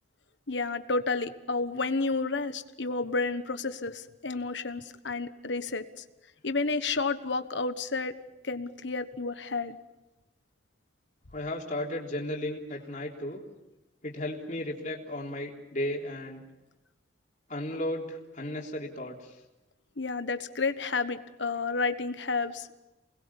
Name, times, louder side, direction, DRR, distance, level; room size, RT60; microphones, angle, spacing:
voice 1, 0.5-6.0 6.4-8.1 8.4-9.8 20.0-22.7, left 3 dB, 70° left, 11 dB, 1.3 m, -31 dB
voice 2, 11.3-13.4 14.0-16.4 17.5-19.3, left 1 dB, 40° left, -1 dB, 3.6 m, -34 dB
28.5 x 21.0 x 7.2 m, 1.0 s
head